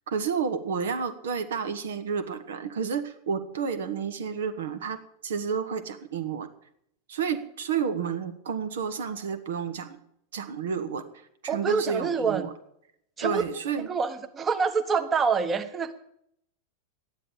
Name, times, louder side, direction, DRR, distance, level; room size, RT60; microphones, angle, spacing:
voice 1, 0.1-6.5 7.1-10.0 10.3-11.0 11.4-12.5 13.2-13.9, right 6 dB, 60° right, 9 dB, 1.1 m, -30 dB
voice 2, 11.5-12.5 13.2-13.4 13.8-16.0, right 5 dB, 20° right, 7 dB, 1.3 m, -26 dB
12.5 x 10.0 x 7.4 m, 0.71 s
figure-of-eight pair, 90°, 0 cm